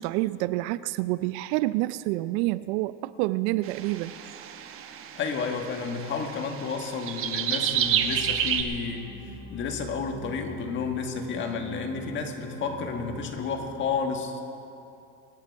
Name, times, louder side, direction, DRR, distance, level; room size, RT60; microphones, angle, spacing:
voice 1, 0.0-4.4, right 18 dB, 80° right, 16 dB, 0.5 m, -28 dB
sound 1, 3.6-8.6, right 9 dB, 45° right, 1.0 m, -30 dB
voice 2, 5.1-9.1 9.5-14.4, left 5 dB, 35° left, 3 dB, 1.6 m, -31 dB
sound 2, 7.7-13.9, right 1 dB, 5° right, 4.1 m, -42 dB
24.5 x 9.8 x 4.7 m, 2.7 s
cardioid pair, 150°, 32 cm